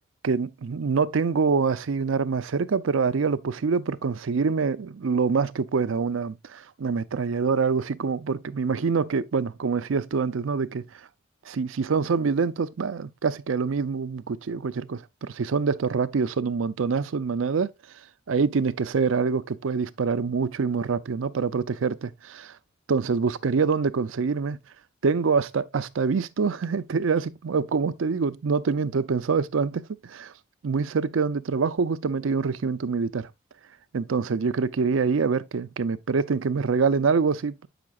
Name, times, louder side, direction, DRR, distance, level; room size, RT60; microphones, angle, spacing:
voice 1, 0.2-10.9 11.5-17.7 18.3-22.5 22.9-24.6 25.0-30.3 30.6-33.3 33.9-37.7, right 5 dB, 85° right, 0.5 m, -25 dB
8.5 x 6.0 x 2.3 m
head